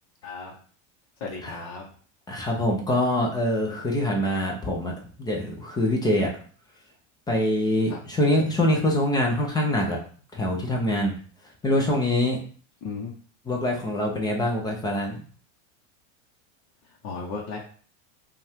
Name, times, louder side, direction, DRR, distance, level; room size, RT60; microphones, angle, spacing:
voice 1, 0.2-0.5 1.2-1.9 7.9-8.0 12.8-13.1 16.9-17.6, left 4 dB, 45° left, -3 dB, 0.9 m, -35 dB
voice 2, 2.3-4.9 5.2-6.3 7.3-10.0 10.3-11.1 11.6-12.4 13.5-15.2, left 1 dB, 10° left, 0 dB, 0.5 m, -24 dB
5.2 x 2.4 x 3.4 m, 0.44 s
supercardioid pair, 160°, 37 cm